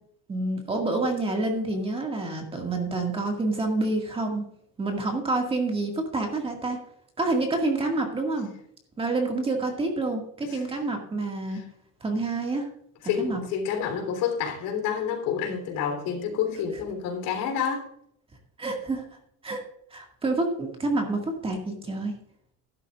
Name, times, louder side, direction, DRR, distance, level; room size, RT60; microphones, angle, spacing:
voice 1, 0.3-4.4 4.8-6.8 7.2-8.5 9.0-11.6 12.0-12.7 13.2-13.4 18.6-19.0 19.4-19.6 19.9-22.1, right 2 dB, 15° right, 1.9 m, -28 dB
voice 2, 13.0-17.9, left 7 dB, 75° left, 3.4 m, -29 dB
13.0 x 11.5 x 2.4 m
cardioid pair, 175°, 33 cm